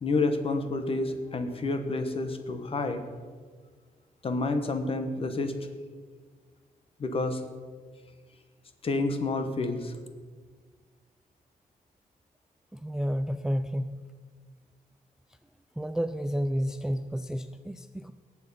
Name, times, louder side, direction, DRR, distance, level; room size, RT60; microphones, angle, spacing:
voice 1, 0.0-3.0 4.2-5.5 7.0-7.4 8.8-10.0, left 3 dB, 35° left, 8 dB, 1.2 m, -29 dB
voice 2, 12.7-14.0 15.8-18.1, equal, 5° right, 10 dB, 0.3 m, -31 dB
18.5 x 7.3 x 5.5 m, 1.5 s
wide cardioid pair, 160°, 15 cm